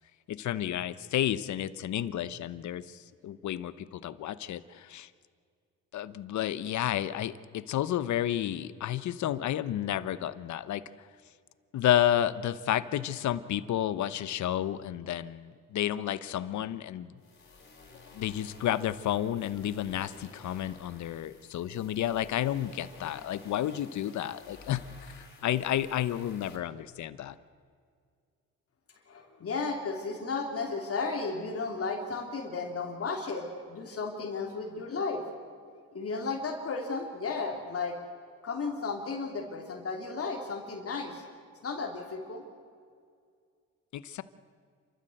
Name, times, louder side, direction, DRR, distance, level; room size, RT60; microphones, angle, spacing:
voice 1, 0.3-5.1 5.9-11.1 11.7-17.1 18.1-27.3 43.9-44.2, left 11 dB, 70° left, 15 dB, 1.0 m, -31 dB
sound 1, 17.2-26.6, left 3 dB, 35° left, 4.9 m, -53 dB
voice 2, 29.0-35.2 35.9-38.0 38.4-41.2 41.6-42.4, left 4 dB, 50° left, 2 dB, 3.1 m, -34 dB
29.5 x 14.0 x 7.9 m, 2.2 s
cardioid pair, 90°, 30 cm